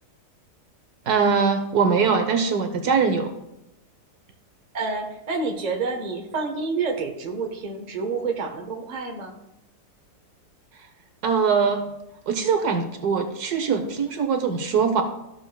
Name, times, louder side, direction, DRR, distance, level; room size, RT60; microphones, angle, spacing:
voice 1, 1.1-3.3 11.2-11.8 12.3-15.0, right 5 dB, 70° right, 6 dB, 1.3 m, -22 dB
voice 2, 4.7-9.4, right 4 dB, 30° right, 3 dB, 1.0 m, -28 dB
13.5 x 6.7 x 2.3 m, 0.87 s
omnidirectional pair, 1.8 m